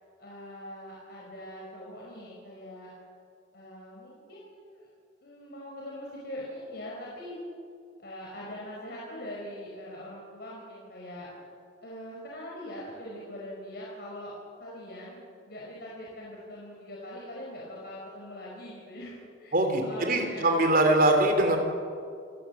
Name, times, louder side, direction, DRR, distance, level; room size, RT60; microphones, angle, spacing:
voice 1, 0.2-2.9 3.5-4.8 5.2-7.4 8.0-11.3 11.8-14.3 14.6-15.2 15.5-20.6, left 1 dB, 55° left, -4 dB, 5.2 m, -42 dB
voice 2, 19.5-21.6, right 1 dB, 50° right, 4 dB, 3.7 m, -22 dB
28.5 x 17.0 x 7.4 m, 2.3 s
head